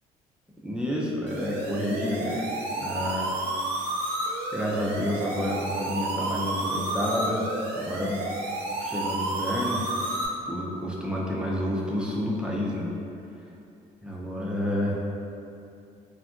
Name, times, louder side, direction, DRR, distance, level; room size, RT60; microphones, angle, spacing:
voice 1, 0.6-2.5 2.8-3.3 4.5-7.5 7.7-8.2 8.8-9.9 10.5-12.9 14.0-15.0, equal, 5° right, -5 dB, 0.4 m, -29 dB
sound 1, 1.3-10.3, right 1 dB, 85° right, 0.5 m, -31 dB
3.5 x 2.5 x 2.3 m, 2.6 s
cardioid pair, 110°, 17 cm